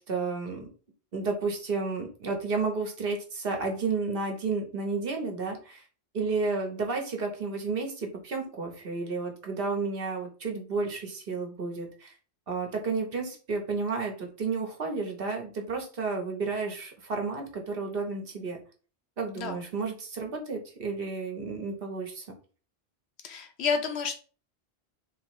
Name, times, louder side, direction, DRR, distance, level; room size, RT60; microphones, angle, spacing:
voice 1, 0.1-0.7 1.1-5.8 6.1-12.1 12.5-18.6 19.2-22.3, right 4 dB, 60° right, 2 dB, 1.2 m, -32 dB
voice 2, 23.2-24.2, left 6 dB, 75° left, 6 dB, 1.0 m, -30 dB
3.3 x 3.1 x 4.7 m, 0.38 s
omnidirectional pair, 1.1 m